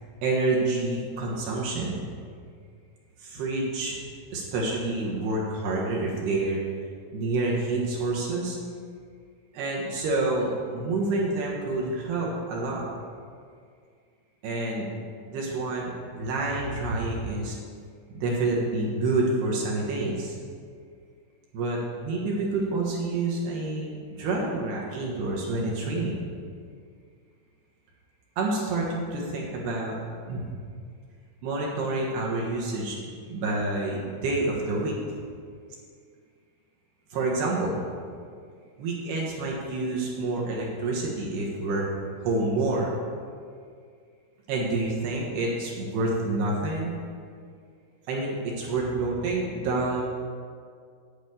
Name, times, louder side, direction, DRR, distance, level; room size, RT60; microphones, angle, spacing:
voice 1, 0.2-2.0 3.2-4.0 4.3-6.6 7.1-8.6 9.5-12.9 14.4-14.9 15.3-17.6 18.1-20.4 21.5-26.2 28.4-30.0 30.3-30.5 31.4-33.0 33.3-35.2 37.1-37.8 38.8-42.9 44.5-46.9 48.1-50.0, right 2 dB, 70° right, -3 dB, 3.0 m, -28 dB
10.5 x 5.0 x 8.4 m, 2.2 s
omnidirectional pair, 5.6 m